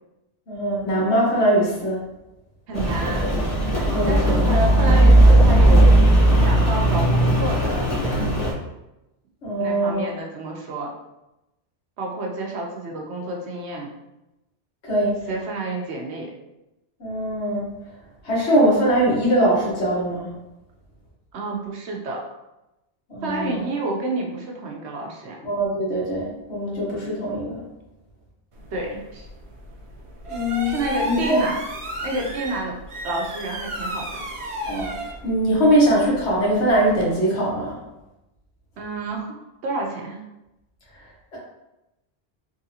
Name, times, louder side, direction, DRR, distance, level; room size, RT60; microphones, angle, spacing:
voice 1, 0.5-2.0 3.9-4.5 9.4-10.1 14.8-15.2 17.0-17.7 18.2-20.3 23.1-23.7 25.4-27.6 30.3-30.7 31.0-31.4 34.7-34.9 35.2-37.7, right 1 dB, 85° left, -5 dB, 1.6 m, -21 dB
Rain, 2.7-8.5, right 1 dB, 40° left, 1.2 m, -16 dB
voice 2, 2.7-3.3 3.7-6.0 6.4-7.9 9.6-10.9 12.0-13.9 15.3-16.3 21.3-22.2 23.2-25.4 28.7-29.3 30.6-31.6 32.0-32.8 33.0-34.2 38.8-40.2, right 2 dB, 85° right, 0 dB, 1.0 m, -29 dB
sound 1, 28.5-37.1, equal, 40° right, 0.5 m, -34 dB
3.7 x 3.2 x 2.8 m, 0.96 s
omnidirectional pair, 1.1 m